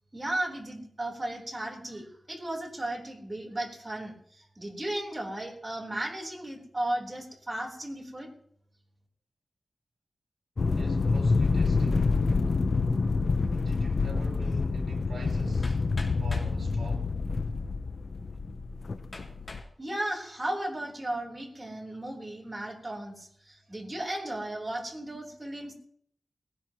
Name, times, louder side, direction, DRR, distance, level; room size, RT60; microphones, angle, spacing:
voice 1, 0.1-8.3 19.8-25.7, right 1 dB, 20° right, 3.8 m, -35 dB
sound 1, 10.6-19.6, left 4 dB, 55° left, 0.6 m, -27 dB
voice 2, 10.6-12.2 13.5-15.8 16.2-17.2, right 1 dB, 60° right, 6.8 m, -43 dB
Hammer, 15.6-16.6 17.5-17.6 18.2-18.3 19.1-19.7 20.3-20.7, left 2 dB, 40° left, 3.2 m, -45 dB
19.5 x 18.0 x 3.0 m
wide cardioid pair, 120°, 0 cm